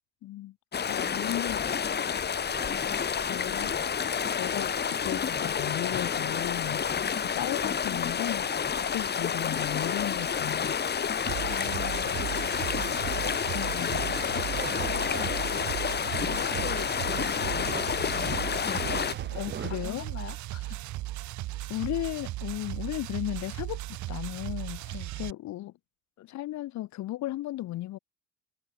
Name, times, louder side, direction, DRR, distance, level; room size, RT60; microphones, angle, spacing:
voice 1, 0.2-0.6 0.9-1.8 2.1-2.2 3.3-3.8 4.4-6.8 7.2-8.5 8.9-10.8 13.5-14.1 19.3-20.0 21.7-23.8 24.1-24.9 25.2-25.7 26.2-28.0, left 15 dB, 75° left, 3.5 m, -35 dB
sound 1, 0.7-19.2, left 7 dB, 35° left, 3.8 m, -29 dB
sound 2, 2.5-19.9, right 7 dB, 35° right, 4.2 m, -45 dB
sound 3, 11.3-25.3, right 17 dB, 80° right, 7.1 m, -36 dB
voice 2, 11.5-13.0 14.6-15.7 16.2-18.2 18.5-20.9 24.9-25.1, left 10 dB, 50° left, 5.4 m, -43 dB
cardioid pair, 130°, 29 cm